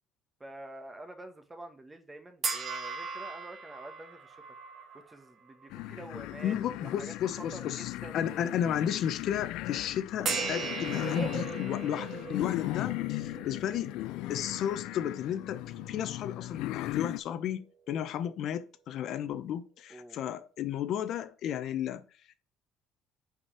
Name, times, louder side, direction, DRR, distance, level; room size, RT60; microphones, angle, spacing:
voice 1, 0.4-4.4 4.9-8.7 17.9-18.1 19.9-20.3, right 1 dB, 15° right, 1.3 m, -48 dB
sound 1, 2.4-6.0 6.5-6.7 10.3-16.6, right 5 dB, 45° right, 1.7 m, -39 dB
sound 2, 5.7-17.2, left 18 dB, 80° left, 0.3 m, -37 dB
voice 2, 6.4-14.0 14.3-22.0, left 9 dB, 55° left, 0.9 m, -33 dB
5.5 x 5.3 x 6.6 m
cardioid pair, 140°, 0 cm